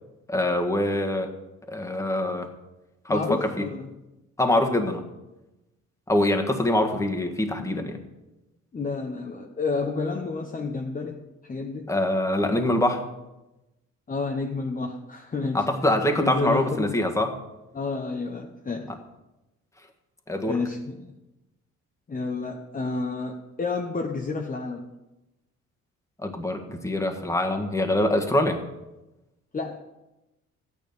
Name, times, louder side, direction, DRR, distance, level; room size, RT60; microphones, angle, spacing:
voice 1, 0.3-1.3 1.7-2.5 3.1-3.7 4.4-5.0 6.1-8.0 11.9-13.0 15.5-17.3 20.3-20.6 26.2-28.6, left 1 dB, 10° left, 3 dB, 1.7 m, -24 dB
voice 2, 3.1-3.9 8.7-11.9 14.1-15.6 16.2-17.0 17.7-18.9 20.5-21.1 22.1-24.9 29.5-29.8, left 3 dB, 30° left, 2 dB, 1.1 m, -30 dB
13.0 x 9.5 x 5.4 m, 0.98 s
cardioid pair, 90°, 30 cm